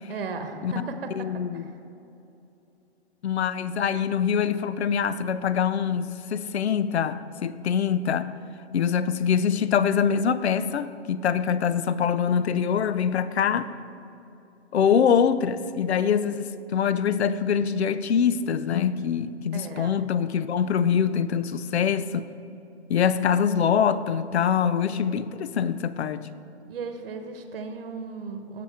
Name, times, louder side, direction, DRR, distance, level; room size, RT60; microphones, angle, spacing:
voice 1, 0.1-1.3 1.5-1.7 19.5-20.0 26.7-28.6, right 4 dB, 55° right, 1.1 m, -36 dB
voice 2, 1.1-1.6 3.2-8.3 8.7-13.7 14.7-22.3 22.9-26.3, left 7 dB, 70° left, 0.6 m, -24 dB
16.0 x 6.7 x 3.5 m
hypercardioid pair, 145°, 34 cm